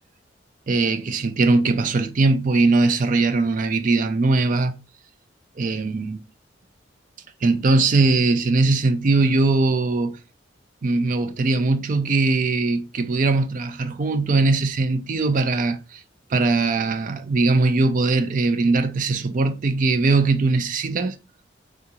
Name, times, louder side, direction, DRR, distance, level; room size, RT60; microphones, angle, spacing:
voice 1, 0.7-4.8 5.6-6.2 7.4-10.2 10.8-16.0 16.3-21.2, right 3 dB, 45° right, 0.4 m, -20 dB
3.6 x 2.5 x 2.9 m
head